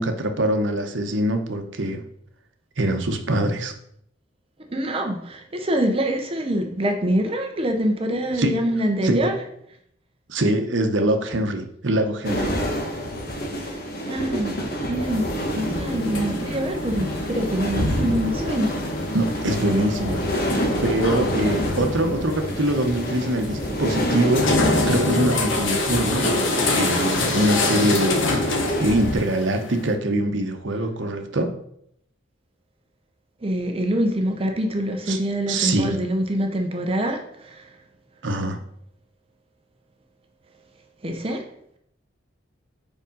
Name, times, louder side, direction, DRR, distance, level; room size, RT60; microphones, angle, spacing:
voice 1, 0.0-2.0 2.8-3.7 8.3-8.6 9.0-9.4 10.3-12.5 19.1-20.3 20.8-31.5 35.1-35.2 35.5-36.0 38.2-38.6, right 1 dB, 70° right, 5 dB, 0.9 m, -24 dB
voice 2, 4.7-9.3 13.7-13.8 14.0-14.5 14.9-15.3 15.5-18.7 33.4-37.2 37.5-37.6 41.0-41.4, right 1 dB, 30° right, 4 dB, 0.7 m, -25 dB
sound 1, 12.2-29.2, equal, 50° left, 1.2 m, -28 dB
sound 2, 15.0-29.9, left 2 dB, 75° left, 1.1 m, -27 dB
5.1 x 4.8 x 5.3 m, 0.72 s
head